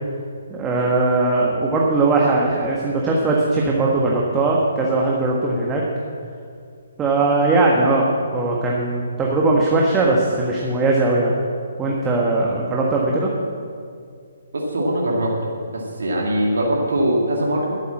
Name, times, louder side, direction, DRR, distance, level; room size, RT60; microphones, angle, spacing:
voice 1, 0.5-5.8 7.0-11.3 11.8-13.3, right 2 dB, 15° right, -3 dB, 1.5 m, -19 dB
voice 2, 14.5-15.3 15.7-17.7, right 1 dB, 70° right, -2 dB, 2.1 m, -21 dB
12.0 x 8.4 x 7.4 m, 2.3 s
figure-of-eight pair, 135°, 0 cm